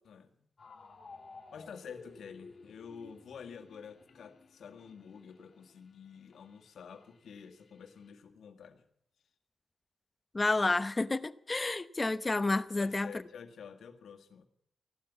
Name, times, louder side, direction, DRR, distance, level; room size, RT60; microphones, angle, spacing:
voice 1, 0.0-0.5 1.5-8.8 12.8-14.5, left 6 dB, 80° left, 1.8 m, -49 dB
sound 1, 0.6-8.1, left 4 dB, 45° left, 3.0 m, -56 dB
voice 2, 10.3-13.1, left 2 dB, 25° left, 0.8 m, -30 dB
16.5 x 12.0 x 7.2 m
cardioid pair, 90°, 0 cm